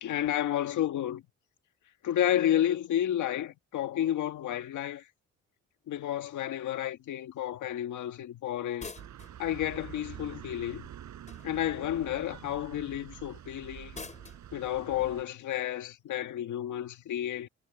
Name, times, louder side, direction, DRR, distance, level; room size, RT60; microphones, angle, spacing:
voice 1, 0.0-1.2 2.0-5.0 5.9-8.9 9.4-10.8 11.4-14.0 14.5-17.5, left 11 dB, 75° left, 1.9 m, -31 dB
sound 1, 8.8-9.4 11.2-11.7 13.9-14.4, left 3 dB, 25° left, 4.9 m, -44 dB
sound 2, 9.0-15.2, right 10 dB, 70° right, 6.1 m, -46 dB
cardioid pair, 90°, 30 cm